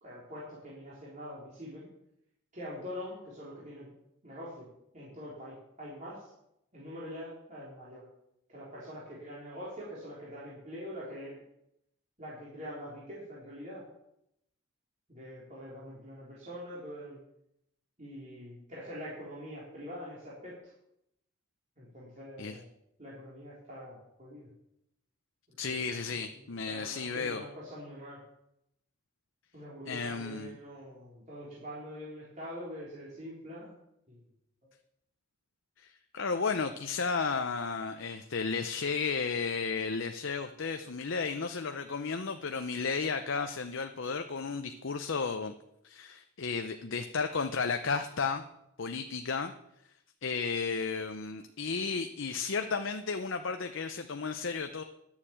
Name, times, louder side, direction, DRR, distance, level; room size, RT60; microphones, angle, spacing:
voice 1, 0.0-1.9 2.5-3.9 4.2-4.7 4.9-6.3 6.7-8.0 8.5-11.4 12.2-13.8 15.1-17.2 18.0-20.7 21.8-22.6 23.0-24.5 25.6-28.2 29.5-33.7 34.1-34.2, equal, 35° right, -8 dB, 3.5 m, -44 dB
voice 2, 25.6-27.4 29.9-30.5 35.8-45.5 45.8-48.4 48.8-49.5 50.2-54.8, left 5 dB, 55° left, 7 dB, 0.7 m, -33 dB
11.0 x 7.3 x 8.7 m, 0.80 s
head